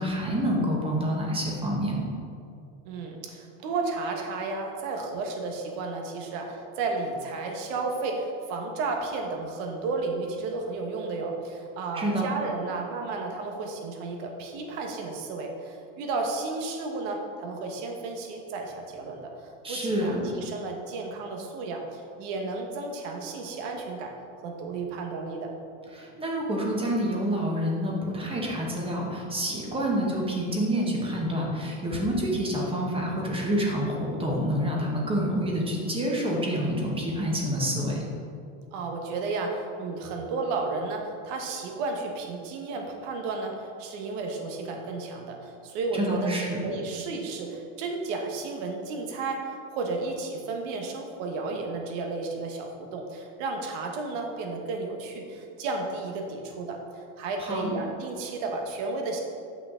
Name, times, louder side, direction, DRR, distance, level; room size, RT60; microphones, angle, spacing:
voice 1, 0.0-2.1 11.9-12.2 19.6-20.3 25.9-38.0 45.9-46.6 57.4-57.7, equal, 15° right, -2 dB, 1.2 m, -28 dB
voice 2, 2.8-24.1 24.4-25.5 38.7-59.2, right 3 dB, 65° right, 2 dB, 1.3 m, -33 dB
8.1 x 5.8 x 3.7 m, 2.5 s
supercardioid pair, 140°, 40 cm